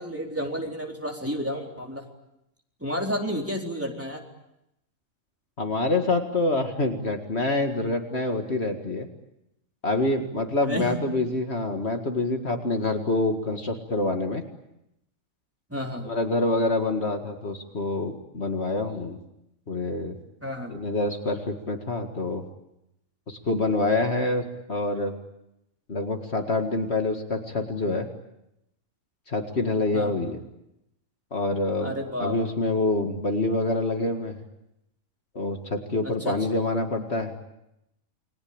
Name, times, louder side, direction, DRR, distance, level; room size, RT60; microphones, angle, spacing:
voice 1, 0.0-2.0 2.8-4.2 10.6-11.0 15.7-16.1 20.4-20.7 29.9-30.1 31.8-32.5 36.0-36.6, equal, 10° right, 0 dB, 4.0 m, -31 dB
voice 2, 5.6-9.1 9.8-14.4 16.0-19.2 19.7-20.2 20.7-22.4 23.3-24.4 24.7-25.2 25.9-28.1 29.3-30.4 31.3-31.9 32.2-34.4 35.3-37.3, left 2 dB, 50° left, 4 dB, 2.3 m, -26 dB
30.0 x 21.5 x 8.8 m, 0.85 s
omnidirectional pair, 1.4 m